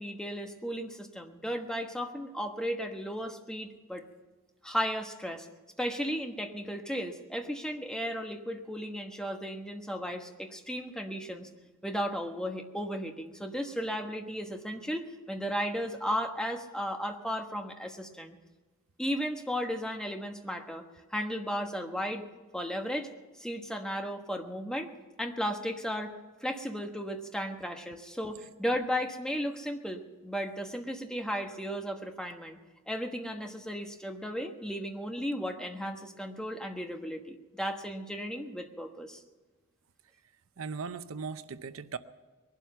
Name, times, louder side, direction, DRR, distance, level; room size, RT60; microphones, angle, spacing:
voice 1, 0.0-4.1 4.6-5.5 5.8-11.5 11.8-18.4 19.0-22.2 22.5-23.1 23.4-24.9 25.2-26.1 26.4-32.6 32.9-39.2, equal, 5° left, 3 dB, 1.3 m, -35 dB
voice 2, 40.6-42.0, right 5 dB, 75° right, 12 dB, 0.7 m, -38 dB
20.5 x 12.0 x 5.7 m, 1.3 s
head